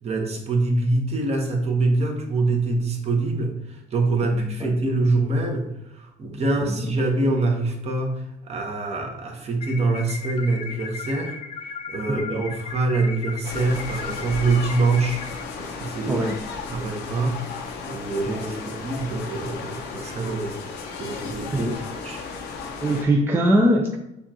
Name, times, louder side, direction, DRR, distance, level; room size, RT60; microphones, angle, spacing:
voice 1, 0.0-5.7 5.9-15.2 15.6-16.2 16.7-17.4 17.9-18.6 18.8-20.5 21.0-22.2, right 3 dB, 40° right, 1 dB, 1.0 m, -25 dB
voice 2, 4.2-4.8 6.6-6.9 12.1-12.4 16.1-16.4 18.3-18.7 21.5-21.8 22.8-24.0, right 1 dB, 15° right, 0 dB, 0.5 m, -23 dB
sound 1, 9.6-15.4, left 5 dB, 40° left, 0.5 m, -36 dB
sound 2, 13.4-23.0, left 4 dB, 80° left, 0.8 m, -35 dB
6.8 x 2.5 x 2.8 m, 0.87 s
cardioid pair, 110°, 17 cm